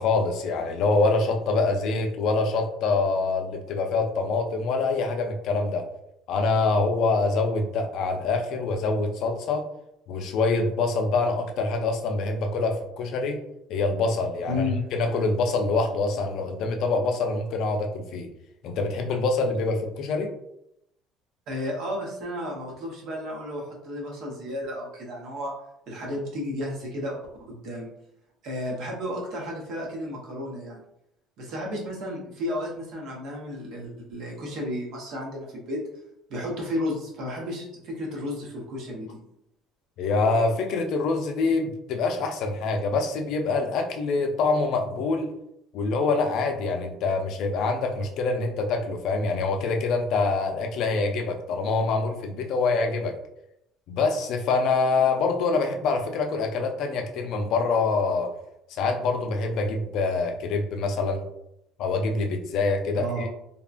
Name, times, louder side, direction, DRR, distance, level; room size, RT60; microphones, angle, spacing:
voice 1, 0.0-5.8 6.3-9.6 10.1-13.4 13.7-14.6 14.9-18.3 18.6-20.3 40.0-45.3 45.7-53.2 53.9-58.3 58.7-61.2 61.8-63.3, left 3 dB, 65° left, 4 dB, 0.4 m, -25 dB
voice 2, 14.5-14.9 21.5-25.5 25.9-27.9 28.4-30.8 31.4-35.8 36.3-39.2 63.0-63.3, left 1 dB, 65° right, -2 dB, 0.9 m, -33 dB
2.8 x 2.1 x 2.4 m, 0.79 s
cardioid pair, 105°, 0 cm